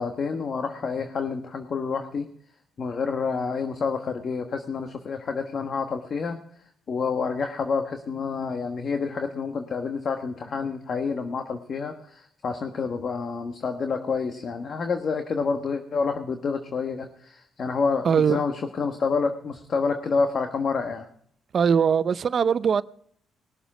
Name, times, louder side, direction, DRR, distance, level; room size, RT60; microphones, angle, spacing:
voice 1, 0.0-2.3 2.8-6.4 6.9-18.5 18.8-21.1, left 5 dB, 50° left, 1.3 m, -28 dB
voice 2, 18.0-18.4 21.5-22.8, right 7 dB, 50° right, 0.6 m, -21 dB
20.0 x 7.2 x 5.0 m
cardioid pair, 90°, 0 cm